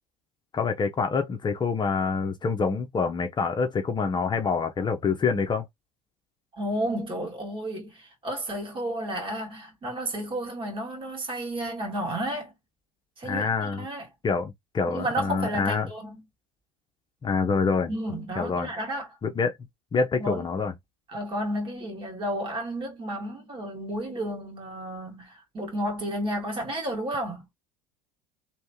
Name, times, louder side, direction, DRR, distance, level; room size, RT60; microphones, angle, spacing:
voice 1, 0.5-5.7 13.2-13.9 14.2-15.9 17.2-17.9 18.4-18.7 19.2-19.6 19.9-20.7, left 5 dB, 25° left, 0.9 m, -26 dB
voice 2, 6.6-12.5 13.2-14.1 14.9-16.2 17.9-19.1 20.2-20.4 21.1-27.5, right 1 dB, 30° right, 2.5 m, -32 dB
3.4 x 3.2 x 3.0 m
hypercardioid pair, 75°, 17 cm